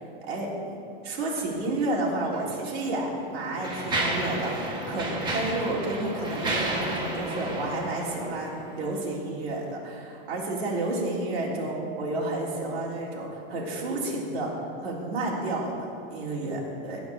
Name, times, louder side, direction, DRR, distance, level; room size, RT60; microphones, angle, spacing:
voice 1, 0.2-0.7 1.0-8.5 8.8-14.5 14.8-17.0, right 2 dB, 75° right, -4 dB, 3.6 m, -31 dB
Mechanisms, 2.2-2.4 3.1-8.9, right 1 dB, 15° right, 1.5 m, -31 dB
15.0 x 5.3 x 8.4 m, 2.6 s
supercardioid pair, 165°, 31 cm